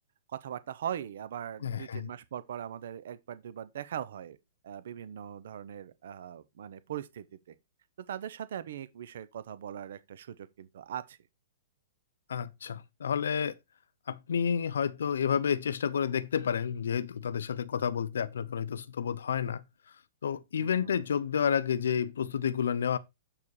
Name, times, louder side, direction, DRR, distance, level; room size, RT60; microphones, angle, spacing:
voice 1, 0.3-4.4 4.6-7.5 8.1-11.2 20.6-21.0, right 9 dB, 50° right, 0.6 m, -40 dB
voice 2, 1.6-2.1 12.3-13.6 14.1-19.6 19.9-23.0, left 7 dB, 85° left, 0.6 m, -30 dB
7.2 x 4.8 x 4.7 m
hypercardioid pair, 180°, 0 cm